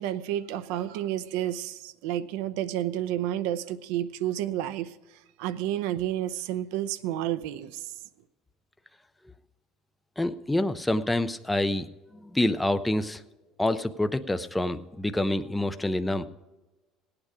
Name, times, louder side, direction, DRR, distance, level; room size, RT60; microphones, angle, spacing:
voice 1, 0.0-5.0 5.4-7.9, right 12 dB, 80° right, 13 dB, 0.6 m, -30 dB
voice 2, 10.2-11.9 12.3-13.2 13.6-16.3, left 1 dB, 5° left, 10 dB, 0.4 m, -27 dB
17.5 x 8.8 x 4.9 m, 1.1 s
cardioid pair, 165°, 0 cm